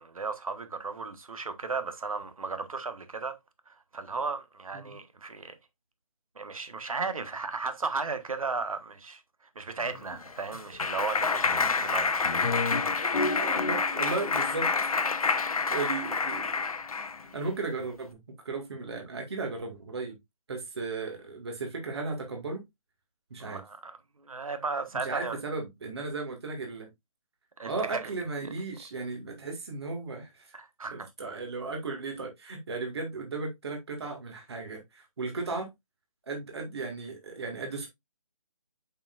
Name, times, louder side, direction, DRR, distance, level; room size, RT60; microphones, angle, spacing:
voice 1, 0.0-3.4 3.7-5.6 6.3-9.2 9.5-13.1 15.5-15.6 23.4-25.4 27.6-28.1 28.4-28.5 30.5-31.1, right 4 dB, 75° right, 1.4 m, -35 dB
Clapping, 10.0-17.2, left 4 dB, 85° left, 0.8 m, -28 dB
voice 2, 13.4-14.7 15.4-16.6 17.3-18.2 18.4-20.2 20.5-22.6 23.3-23.6 24.9-26.9 27.7-30.6 30.9-35.7 36.3-37.9, right 3 dB, 45° right, 1.9 m, -35 dB
6.8 x 5.7 x 2.4 m
hypercardioid pair, 170°, 18 cm